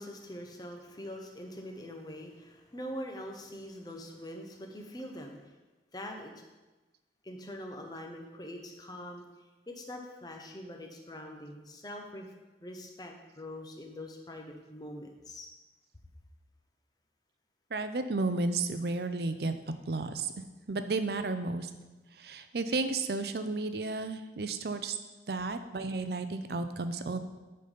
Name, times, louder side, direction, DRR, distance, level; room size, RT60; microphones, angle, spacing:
voice 1, 0.0-5.5 5.9-6.4 7.2-9.2 9.7-12.3 12.6-15.5, left 1 dB, 20° left, 2 dB, 0.9 m, -43 dB
voice 2, 17.7-19.5 19.9-20.3 20.7-21.7 22.1-25.0 25.3-27.2, right 3 dB, 65° right, 9 dB, 0.6 m, -32 dB
10.0 x 4.0 x 5.3 m, 1.1 s
head